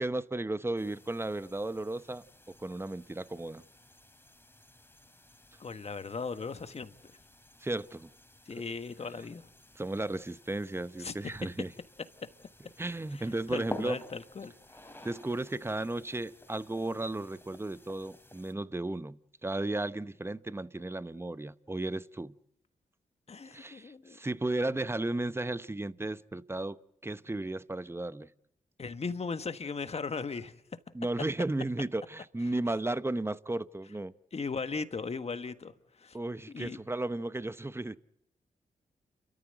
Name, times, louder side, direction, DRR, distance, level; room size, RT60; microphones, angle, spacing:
voice 1, 0.0-2.2 2.6-3.6 7.6-8.1 9.8-11.7 12.8-14.0 15.0-22.3 23.5-26.8 27.0-28.3 30.9-34.1 36.1-38.0, right 2 dB, 15° right, 0.9 m, -34 dB
sound 1, 0.8-18.5, left 1 dB, 15° left, 3.1 m, -52 dB
voice 2, 5.6-6.9 8.5-9.5 11.0-11.1 13.1-14.5 23.3-24.2 28.8-30.5 34.3-35.7 36.0-36.2 36.5-36.8, left 4 dB, 45° left, 1.5 m, -37 dB
29.5 x 14.0 x 7.9 m
supercardioid pair, 40°, 14 cm